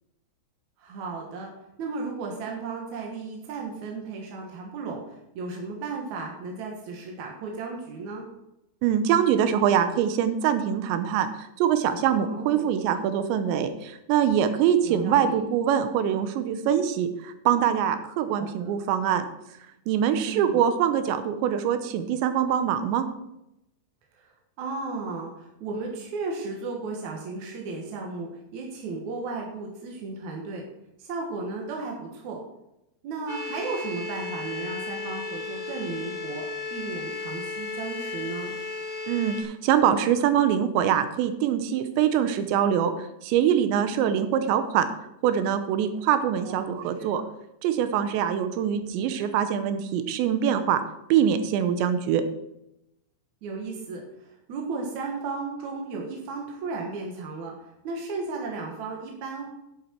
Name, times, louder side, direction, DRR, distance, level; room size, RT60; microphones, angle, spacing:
voice 1, 0.8-1.5 1.8-8.3 12.1-12.7 14.8-15.4 18.4-18.8 20.2-20.7 24.1-30.6 31.0-32.4 33.0-36.4 36.7-38.6 46.4-47.3 48.8-49.0 53.4-59.5, right 3 dB, 60° right, 0 dB, 2.1 m, -35 dB
voice 2, 8.8-19.3 19.9-23.1 39.1-42.9 43.2-44.9 45.2-47.2 47.6-50.8 51.1-52.2, right 9 dB, 90° right, 10 dB, 3.1 m, -24 dB
sound 1, 33.3-39.4, left 3 dB, 75° left, 5.4 m, -34 dB
11.0 x 8.2 x 4.5 m, 0.85 s
omnidirectional pair, 5.1 m